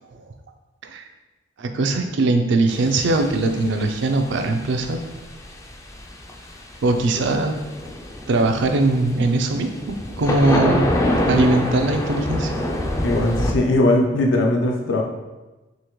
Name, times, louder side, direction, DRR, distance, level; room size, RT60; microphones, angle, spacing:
voice 1, 1.6-5.0 6.8-7.5 8.3-9.7 10.2-10.9 11.3-12.5, right 2 dB, 65° right, 5 dB, 0.4 m, -20 dB
sound 1, 2.7-13.5, left 1 dB, 15° left, 0.3 m, -26 dB
voice 2, 13.0-15.0, left 1 dB, 75° left, 1 dB, 0.5 m, -19 dB
3.7 x 2.8 x 3.0 m, 1.1 s
head